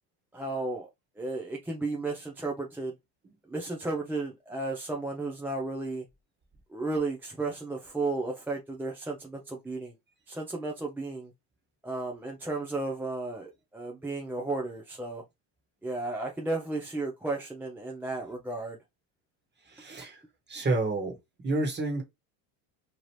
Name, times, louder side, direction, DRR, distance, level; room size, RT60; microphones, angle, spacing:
voice 1, 0.3-0.9 1.2-2.9 3.5-6.1 6.7-9.9 10.3-11.3 11.8-15.2 15.8-18.8, right 2 dB, 5° right, 0.4 m, -33 dB
voice 2, 19.6-20.2 20.5-21.2 21.4-22.0, right 2 dB, 20° right, 1.3 m, -29 dB
3.0 x 2.4 x 3.1 m
hypercardioid pair, 85°, 49 cm